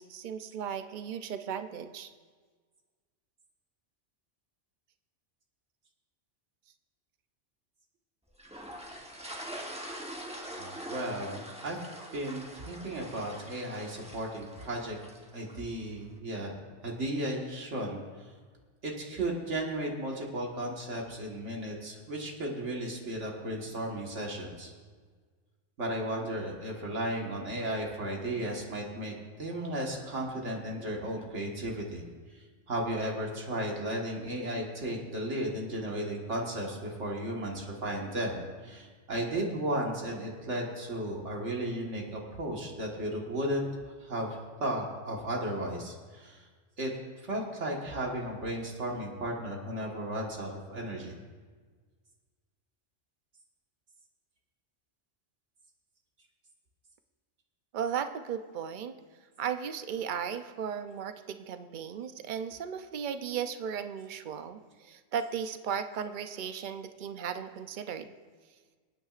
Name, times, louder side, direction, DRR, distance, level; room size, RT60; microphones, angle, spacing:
voice 1, 0.0-2.1 57.7-58.9 59.4-68.1, right 8 dB, 50° right, 9 dB, 0.7 m, -36 dB
sound 1, 8.4-15.7, equal, 5° right, 1.1 m, -44 dB
voice 2, 10.5-11.8 12.1-15.0 15.3-16.5 16.8-18.0 18.8-24.7 25.8-29.1 29.4-32.0 32.3-32.4 32.7-44.3 44.6-46.4 46.8-46.9 47.2-51.1, right 1 dB, 80° right, -1 dB, 1.9 m, -34 dB
26.0 x 9.2 x 2.5 m, 1.5 s
omnidirectional pair, 1.2 m